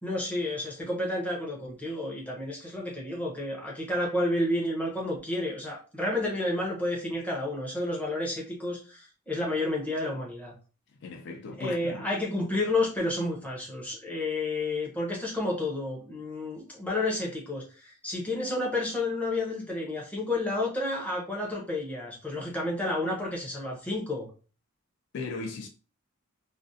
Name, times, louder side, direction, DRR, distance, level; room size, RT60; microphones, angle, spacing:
voice 1, 0.0-10.5 11.6-24.3, left 2 dB, 5° left, 0.6 m, -30 dB
voice 2, 11.0-12.1 25.1-25.7, left 3 dB, 50° left, 0.3 m, -37 dB
2.4 x 2.1 x 2.6 m
head